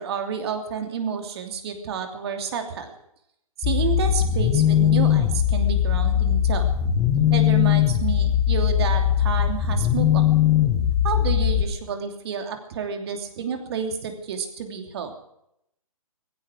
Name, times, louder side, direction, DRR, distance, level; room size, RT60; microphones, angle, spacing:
voice 1, 0.0-2.9 3.6-6.7 7.3-10.2 11.0-15.1, right 6 dB, 45° right, 5 dB, 2.9 m, -30 dB
sound 1, 3.6-11.6, left 10 dB, 20° left, 2.0 m, -20 dB
17.0 x 16.0 x 5.0 m, 0.76 s
hypercardioid pair, 145°, 18 cm